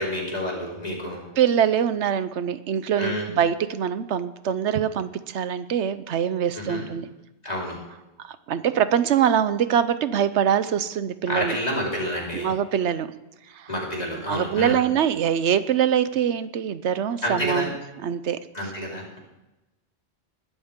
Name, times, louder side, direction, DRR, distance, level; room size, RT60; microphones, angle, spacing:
voice 1, 0.0-1.2 3.0-3.2 6.7-6.9 7.4-7.8 11.3-12.5 13.7-14.8 17.2-17.7 18.5-19.2, left 1 dB, 35° left, -4 dB, 4.4 m, -29 dB
voice 2, 1.4-7.1 8.2-11.6 12.3-13.1 13.6-13.7 14.3-18.7, right 9 dB, 85° right, 13 dB, 1.0 m, -24 dB
20.5 x 12.5 x 3.7 m, 0.99 s
omnidirectional pair, 1.1 m